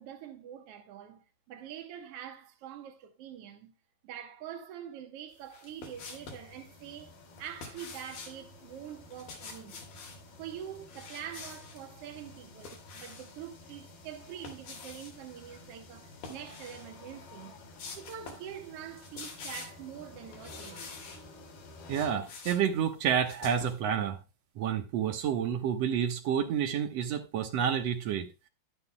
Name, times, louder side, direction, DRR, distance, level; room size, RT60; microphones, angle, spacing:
voice 1, 0.0-3.7 4.0-9.8 10.4-17.6 17.9-21.1 22.5-22.6, right 9 dB, 80° right, 1.3 m, -45 dB
sound 1, 5.4-6.5 7.4-8.4 9.1-10.2 10.9-11.8 12.2-13.4 14.2-15.2 16.1-16.9 17.3-17.4 17.8-18.5 18.8-19.9 20.3-21.2 21.7-23.8, left 4 dB, 70° left, 4.2 m, -47 dB
sound 2, 5.9-22.1, left 2 dB, 85° left, 4.8 m, -52 dB
voice 2, 21.9-24.2 24.5-28.3, right 8 dB, 65° right, 1.7 m, -29 dB
11.5 x 10.5 x 2.2 m
omnidirectional pair, 4.3 m